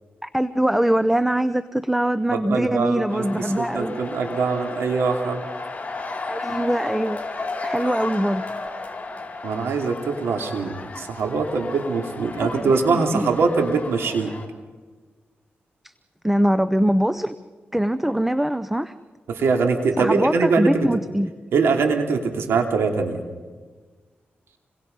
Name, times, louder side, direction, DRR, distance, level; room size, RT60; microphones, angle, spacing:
voice 1, 0.2-4.0 6.3-7.2 7.6-8.5 12.4-13.3 15.8-15.9 16.2-17.3 17.7-18.9 20.0-21.3, right 1 dB, 5° right, 13 dB, 0.8 m, -22 dB
voice 2, 2.3-5.4 9.4-14.3 19.3-20.9 21.5-23.2, right 4 dB, 90° right, 3 dB, 2.8 m, -23 dB
sound 1, 3.1-14.5, left 3 dB, 35° left, 4.7 m, -34 dB
28.0 x 22.0 x 5.5 m, 1.4 s
cardioid pair, 70°, 4 cm